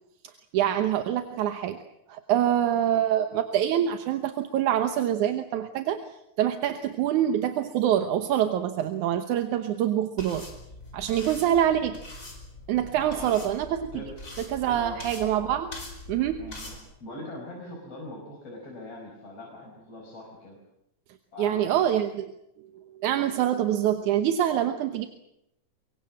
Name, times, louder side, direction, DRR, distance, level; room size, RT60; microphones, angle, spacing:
voice 1, 0.5-1.8 2.1-6.0 6.4-10.5 10.9-12.0 12.7-13.9 14.5-15.7 16.1-16.5 21.4-22.3 23.0-25.1, right 10 dB, 80° right, 8 dB, 2.6 m, -25 dB
sound 1, 10.2-16.8, left 1 dB, 25° left, 5.0 m, -43 dB
voice 2, 12.9-13.3 13.9-14.1 14.7-15.0 16.4-20.6 21.3-21.9, left 1 dB, 50° left, -2 dB, 6.4 m, -41 dB
24.5 x 23.0 x 7.5 m, 0.83 s
omnidirectional pair, 3.4 m